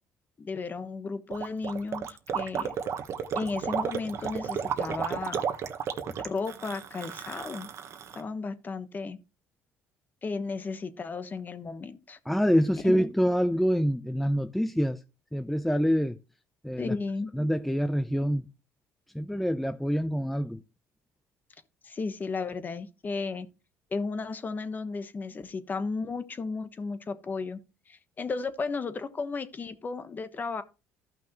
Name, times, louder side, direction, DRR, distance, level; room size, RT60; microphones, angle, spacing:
voice 1, 0.4-2.7 3.3-5.5 6.2-7.7 8.1-9.2 10.2-12.2 12.8-13.0 16.8-17.3 21.8-23.5 23.9-27.6 27.9-30.6, left 4 dB, 30° left, 1.2 m, -34 dB
Gurgling, 1.3-8.2, right 7 dB, 55° right, 1.2 m, -33 dB
voice 2, 12.3-15.0 15.3-16.2 16.6-16.9 17.3-18.4 19.1-20.6, equal, 5° left, 0.5 m, -26 dB
14.5 x 5.9 x 3.0 m
cardioid pair, 100°, 6 cm